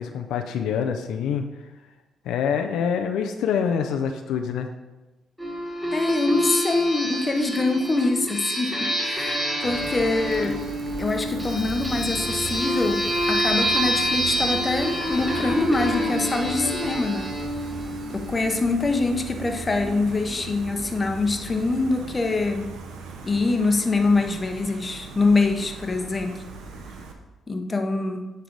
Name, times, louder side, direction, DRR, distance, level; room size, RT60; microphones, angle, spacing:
voice 1, 0.0-1.4 2.2-4.7, left 7 dB, 85° left, 6 dB, 0.4 m, -25 dB
sound 1, 5.4-18.6, equal, 5° right, 1.7 m, -27 dB
voice 2, 5.9-10.5 11.0-17.3 18.3-22.7 23.2-26.4 27.5-28.3, left 3 dB, 25° left, 4 dB, 0.7 m, -24 dB
Gull seagull, 9.6-27.1, right 3 dB, 85° right, 0.7 m, -37 dB
9.2 x 3.3 x 3.9 m, 1.1 s
cardioid pair, 90°, 0 cm